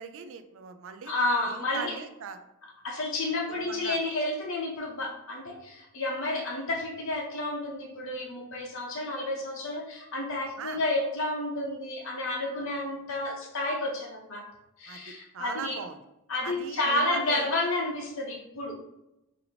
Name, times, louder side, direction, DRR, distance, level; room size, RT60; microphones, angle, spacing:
voice 1, 0.0-1.1 1.5-2.4 3.5-4.0 10.6-10.8 14.9-15.0 15.3-16.0 16.4-17.5, right 6 dB, 60° right, 9 dB, 0.3 m, -39 dB
voice 2, 1.1-2.0 2.8-14.5 14.8-15.8 16.3-18.7, left 2 dB, 60° left, -2 dB, 0.8 m, -31 dB
4.2 x 2.7 x 2.8 m, 0.92 s
head